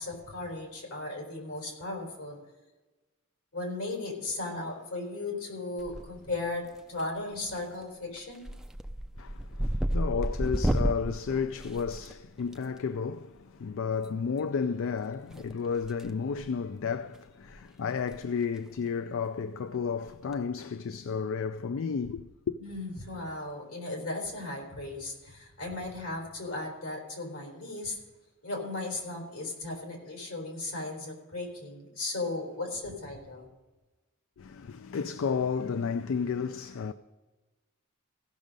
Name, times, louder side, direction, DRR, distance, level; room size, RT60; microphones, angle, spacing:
voice 1, 0.0-2.4 3.5-8.5 22.6-28.0 28.4-33.5, left 2 dB, 80° left, 3.7 m, -36 dB
sound 1, 5.8-6.4 6.7-7.2 7.6-7.8 8.2-12.6 13.9-14.1 15.3-16.1 16.4-16.6 17.1-17.2 17.5-17.6 18.0-18.2 18.4-18.5 20.1-20.3, equal, 5° right, 0.4 m, -32 dB
voice 2, 9.2-22.6 34.4-36.9, left 6 dB, 65° left, 0.4 m, -32 dB
16.0 x 6.2 x 5.2 m
head